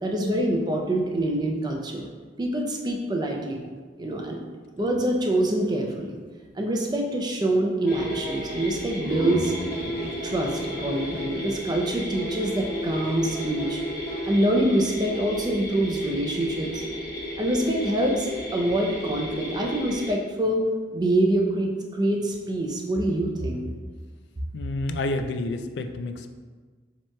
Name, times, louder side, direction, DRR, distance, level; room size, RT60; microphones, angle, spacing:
voice 1, 0.0-2.1 2.4-3.6 4.0-4.4 4.8-6.2 6.5-9.5 10.2-13.8 14.3-16.8 17.4-20.7 20.9-23.6, right 1 dB, 20° right, 1 dB, 0.4 m, -25 dB
sound 1, 7.8-8.8 9.2-11.7 12.1-14.7 15.1-15.2, equal, 10° left, 1.2 m, -37 dB
sound 2, 7.9-20.1, left 1 dB, 50° left, 1.1 m, -34 dB
sound 3, 8.9-12.4, left 1 dB, 85° right, 0.6 m, -36 dB
voice 2, 24.5-26.3, left 2 dB, 70° left, 7 dB, 0.3 m, -29 dB
7.4 x 2.9 x 2.2 m, 1.4 s
head